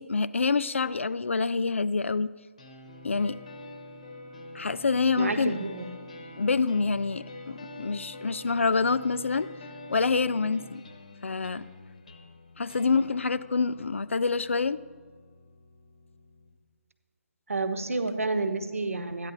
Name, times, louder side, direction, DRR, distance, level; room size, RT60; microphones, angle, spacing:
voice 1, 0.0-2.3 3.0-3.4 4.5-5.5 6.4-9.5 9.9-10.8 11.2-11.6 12.6-14.8, left 4 dB, 55° left, 15 dB, 0.4 m, -26 dB
sound 1, 2.6-16.6, left 2 dB, 25° left, 0.9 m, -46 dB
voice 2, 5.2-5.8 17.5-19.3, right 3 dB, 65° right, 8 dB, 1.0 m, -29 dB
13.0 x 9.8 x 4.0 m, 1.5 s
hypercardioid pair, 180°, 8 cm